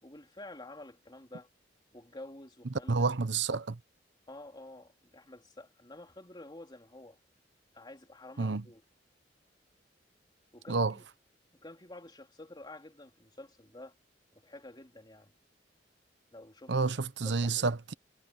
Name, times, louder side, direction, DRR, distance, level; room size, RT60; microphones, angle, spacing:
voice 1, 0.0-1.5 1.9-3.1 4.3-7.2 7.7-8.8 10.5-11.0 11.5-14.0 14.3-15.3 16.3-16.9 17.2-17.7, left 2 dB, 25° left, 3.1 m, -50 dB
voice 2, 2.9-3.8 8.4-8.6 10.7-11.0 16.7-17.9, right 4 dB, 70° right, 0.8 m, -29 dB
head